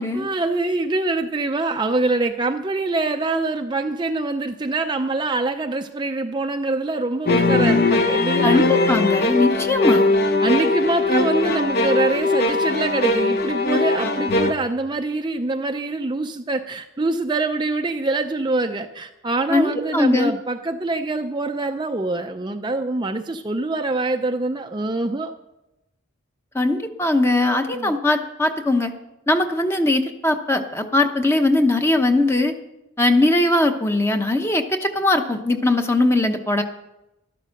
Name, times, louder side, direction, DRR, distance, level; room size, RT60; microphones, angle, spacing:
voice 1, 0.0-8.6 9.6-9.8 10.4-25.3 27.7-27.9, right 2 dB, 20° right, 5 dB, 0.5 m, -24 dB
sound 1, 7.3-14.5, left 2 dB, 45° left, 1.0 m, -20 dB
voice 2, 8.4-10.1 19.5-20.3 26.5-28.9 29.3-32.5 33.0-36.6, left 2 dB, 10° left, 6 dB, 0.8 m, -20 dB
12.5 x 11.5 x 6.5 m, 0.94 s
head